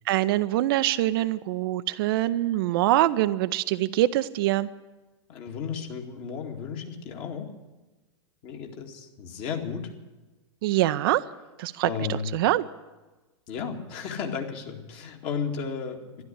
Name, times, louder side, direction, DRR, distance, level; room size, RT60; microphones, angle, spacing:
voice 1, 0.1-4.7 10.6-11.2 11.6-12.7, right 15 dB, 50° right, 13 dB, 0.5 m, -24 dB
voice 2, 5.3-7.5 8.4-9.9 11.8-12.3 13.5-16.2, left 6 dB, 40° left, 3 dB, 2.2 m, -34 dB
12.5 x 11.5 x 9.8 m, 1.2 s
figure-of-eight pair, 100°, 15 cm